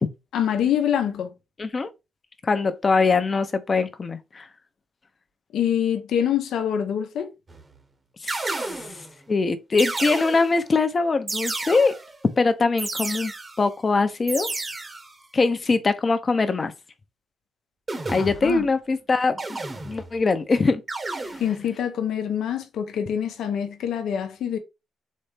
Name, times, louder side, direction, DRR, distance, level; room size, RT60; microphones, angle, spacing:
voice 1, 0.3-1.3 5.5-7.3 18.2-18.6 21.4-24.6, left 9 dB, 75° left, 0.9 m, -25 dB
voice 2, 1.6-1.9 2.4-4.5 8.2-8.8 9.3-12.0 12.4-13.3 13.6-14.5 15.3-16.7 18.1-19.6 19.8-20.8, left 4 dB, 35° left, 0.8 m, -22 dB
sound 1, 7.5-7.8 8.3-9.1 9.8-10.7 11.3-12.2 12.8-13.7 14.3-15.1 17.9-18.6 19.4-20.2 20.9-21.7, right 2 dB, 30° right, 1.1 m, -32 dB
4.2 x 3.2 x 3.4 m
cardioid pair, 80°, 0 cm